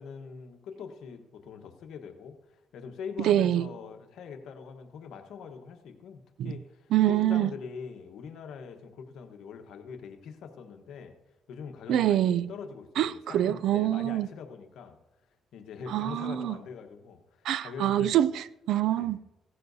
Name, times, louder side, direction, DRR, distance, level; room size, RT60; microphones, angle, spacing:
voice 1, 0.0-11.1 11.5-15.0 15.5-18.2 19.0-19.1, left 6 dB, 80° left, 1.2 m, -43 dB
voice 2, 3.2-3.7 6.4-6.5 6.9-7.5 11.9-12.5 13.0-14.3 15.9-16.5 17.4-19.2, right 12 dB, 80° right, 0.4 m, -25 dB
16.5 x 14.0 x 2.7 m
cardioid pair, 90°, 0 cm